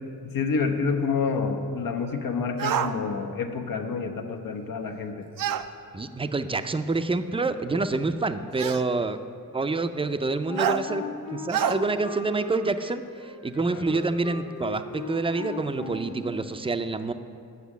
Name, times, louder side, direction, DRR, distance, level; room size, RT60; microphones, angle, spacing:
voice 1, 0.2-5.3 13.7-13.9, left 5 dB, 80° left, 5 dB, 0.9 m, -28 dB
sound 1, 2.6-2.9 5.4-5.7 6.9-7.0 8.6-8.9 10.6-10.8 11.5-11.8, right 9 dB, 75° right, 0.5 m, -26 dB
voice 2, 5.9-9.2 9.5-11.1 11.3-17.1, right 3 dB, 15° right, 10 dB, 0.5 m, -27 dB
Wind instrument woodwind instrument, 10.5-16.3, left 4 dB, 60° left, 1.6 m, -38 dB
8.2 x 6.2 x 8.2 m, 2.4 s
cardioid pair, 75°, 34 cm